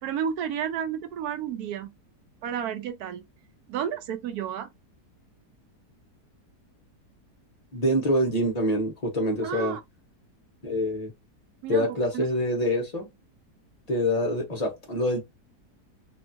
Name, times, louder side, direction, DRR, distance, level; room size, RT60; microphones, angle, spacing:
voice 1, 0.0-1.9 2.4-3.2 3.7-4.7 9.4-9.8 11.6-12.3, right 8 dB, 75° right, 1.0 m, -31 dB
voice 2, 7.7-9.8 10.6-11.1 11.7-13.1 13.9-15.2, equal, 35° left, 0.6 m, -25 dB
2.9 x 2.3 x 2.6 m
omnidirectional pair, 1.8 m